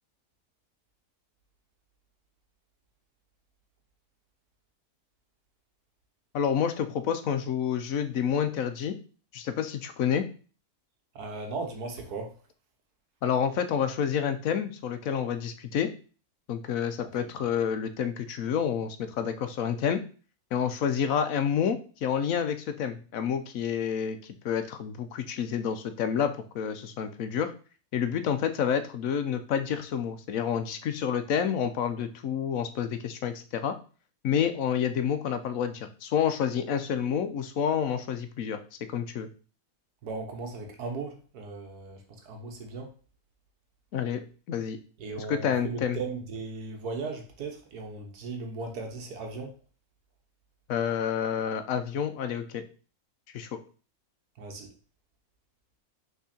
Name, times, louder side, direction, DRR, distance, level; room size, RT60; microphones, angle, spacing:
voice 1, 6.3-9.0 9.3-10.3 13.2-15.9 16.5-20.0 20.5-27.5 27.9-33.8 34.2-38.6 38.9-39.3 43.9-44.8 45.3-46.0 50.7-52.6 53.3-53.5, left 8 dB, 70° left, 9 dB, 1.1 m, -29 dB
voice 2, 11.1-12.3 17.2-17.3 40.0-42.9 45.0-49.5 54.4-54.7, right 3 dB, 90° right, 3 dB, 1.6 m, -37 dB
5.9 x 3.8 x 4.2 m, 0.37 s
omnidirectional pair, 1.6 m